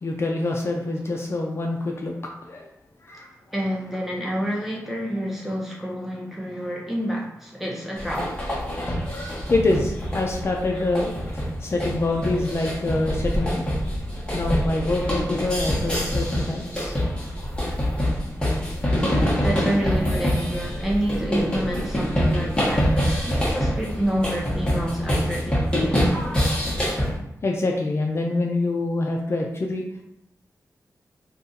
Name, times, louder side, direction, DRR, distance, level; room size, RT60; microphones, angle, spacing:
voice 1, 0.0-2.1 2.4-2.7 3.0-3.3 8.8-11.1 11.6-13.7 14.3-16.9 27.4-29.8, left 2 dB, 40° left, 1 dB, 0.4 m, -25 dB
voice 2, 3.5-8.3 19.4-26.4, equal, 5° right, -3 dB, 0.8 m, -28 dB
sound 1, 8.0-27.1, equal, 15° left, 1.1 m, -25 dB
2.6 x 2.4 x 3.8 m, 0.81 s
wide cardioid pair, 100°, 7 cm